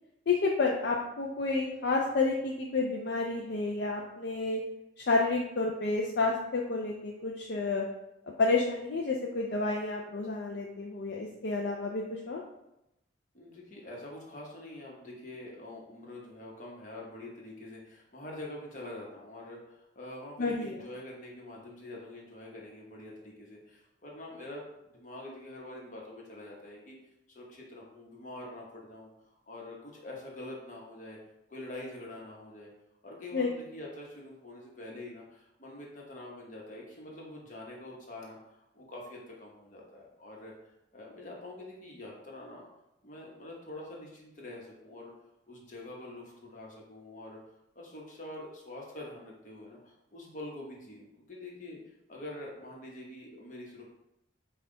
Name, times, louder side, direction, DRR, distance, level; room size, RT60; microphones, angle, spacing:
voice 1, 0.3-4.6 5.0-7.8 8.4-12.4 20.4-20.8 33.3-33.5, left 3 dB, 55° left, -1 dB, 0.4 m, -30 dB
voice 2, 13.3-26.9 27.3-29.1 29.5-31.2 31.5-32.7 33.0-40.5 40.9-42.6 43.0-45.1 45.5-47.4 47.7-53.9, left 1 dB, 40° left, -2 dB, 1.0 m, -45 dB
5.3 x 2.3 x 3.8 m, 0.87 s
head